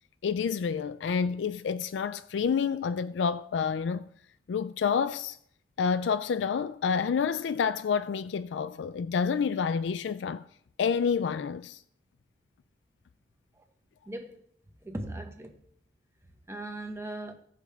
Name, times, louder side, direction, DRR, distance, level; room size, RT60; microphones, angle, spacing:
voice 1, 0.2-4.0 4.5-5.4 5.8-10.4 10.8-11.8, left 6 dB, 80° left, 0.3 m, -28 dB
voice 2, 14.1-14.4 14.8-15.6 16.5-17.3, right 1 dB, 15° right, 1.0 m, -38 dB
16.5 x 5.7 x 3.5 m
head